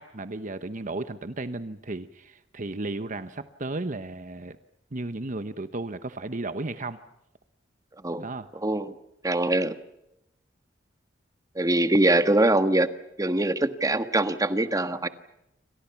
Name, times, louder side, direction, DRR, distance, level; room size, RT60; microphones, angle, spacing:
voice 1, 0.0-4.6 4.9-7.0 8.2-8.5, right 2 dB, 45° right, 11 dB, 1.0 m, -34 dB
voice 2, 8.6-8.9 9.2-9.7 11.5-12.9 13.2-15.1, right 1 dB, 20° right, 10 dB, 1.5 m, -23 dB
29.0 x 25.5 x 5.9 m, 0.83 s
head